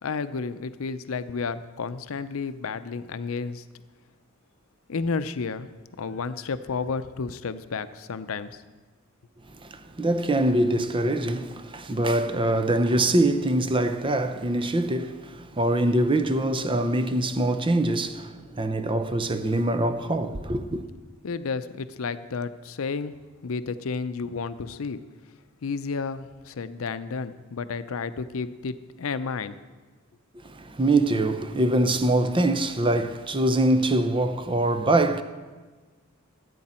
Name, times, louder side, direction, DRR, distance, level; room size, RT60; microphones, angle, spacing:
voice 1, 0.0-3.6 4.9-5.7 6.0-8.6 21.2-23.1 23.4-25.0 25.6-29.6, left 4 dB, 80° left, 0.5 m, -31 dB
voice 2, 9.5-20.9 30.3-35.2, right 1 dB, 25° right, 0.6 m, -24 dB
15.0 x 8.5 x 4.3 m
head